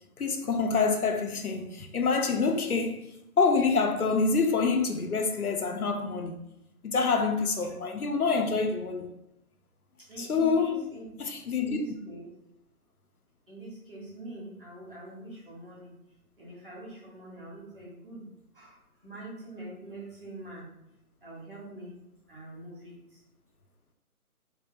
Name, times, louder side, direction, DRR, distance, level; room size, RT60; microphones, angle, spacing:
voice 1, 0.2-3.1 3.4-6.4 6.8-9.1 10.2-10.8 11.2-11.8, left 4 dB, 75° left, 0.6 m, -26 dB
voice 2, 10.0-11.1 11.6-12.3 13.5-16.0 16.4-20.7 21.2-22.0 22.3-23.2, right 1 dB, 35° right, 1.1 m, -44 dB
3.3 x 2.1 x 3.3 m
figure-of-eight pair, 150°, 45 cm